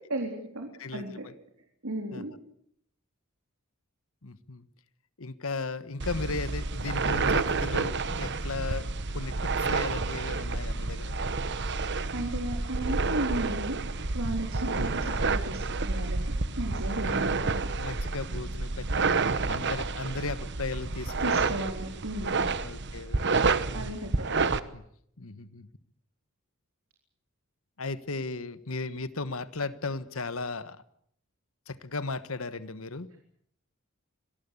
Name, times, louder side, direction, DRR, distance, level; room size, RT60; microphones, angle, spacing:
voice 1, 0.1-1.3 1.8-2.3 12.1-13.8 14.1-16.2 16.6-17.7 21.2-22.4 23.7-24.3, right 1 dB, 70° right, 3 dB, 3.8 m, -34 dB
voice 2, 0.8-1.3 2.1-2.2 4.2-4.7 5.2-8.9 9.1-11.1 17.0-19.2 19.5-21.6 22.6-23.6 24.7-24.8 25.2-25.7 27.8-30.8 31.7-33.2, left 3 dB, 70° left, 14 dB, 1.4 m, -36 dB
sound 1, 6.0-24.6, right 3 dB, 50° right, 1.2 m, -29 dB
25.5 x 19.0 x 8.4 m, 0.69 s
head